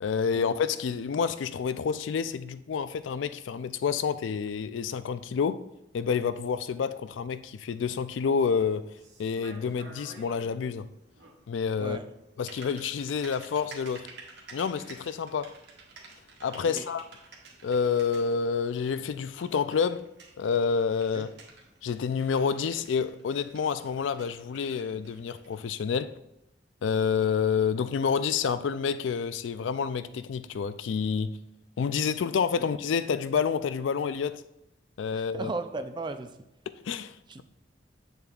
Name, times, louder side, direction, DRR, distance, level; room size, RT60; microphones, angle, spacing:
voice 1, 0.0-5.6 5.9-8.9 9.2-10.9 11.5-12.0 12.4-14.1 14.5-15.5 16.4-17.1 17.6-20.1 20.4-21.3 21.8-26.1 26.8-31.4 31.8-34.4 35.0-35.5 36.7-37.4, left 6 dB, 75° left, 0.4 m, -28 dB
Typing, 7.6-25.6, right 3 dB, 65° right, 1.4 m, -52 dB
voice 2, 35.1-36.4 37.3-37.4, right 3 dB, 25° right, 0.4 m, -36 dB
8.5 x 6.8 x 2.4 m
head